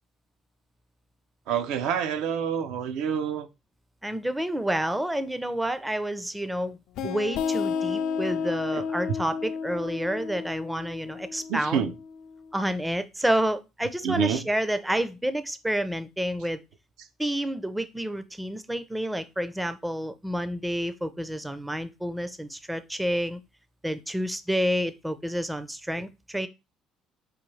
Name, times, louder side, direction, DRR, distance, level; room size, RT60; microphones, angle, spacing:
voice 1, 1.5-3.5 7.0-7.1 8.7-8.8 11.5-11.9 14.0-14.5, right 8 dB, 80° right, 0.4 m, -27 dB
voice 2, 4.0-6.8 7.0-11.9 12.5-16.6 17.2-23.4 23.8-26.5, equal, 5° right, 0.4 m, -29 dB
sound 1, 7.0-12.3, left 6 dB, 70° left, 0.4 m, -32 dB
4.7 x 2.3 x 3.1 m
cardioid pair, 100°, 0 cm